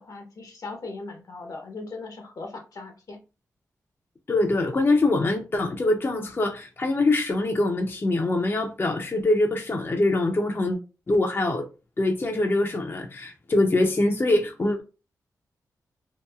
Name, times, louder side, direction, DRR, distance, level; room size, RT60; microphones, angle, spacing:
voice 1, 0.0-3.2, left 3 dB, 65° left, 0.8 m, -39 dB
voice 2, 4.3-10.8 11.1-11.7 12.0-14.8, left 2 dB, 35° left, 0.5 m, -23 dB
2.8 x 2.5 x 2.2 m
cardioid pair, 55°, 7 cm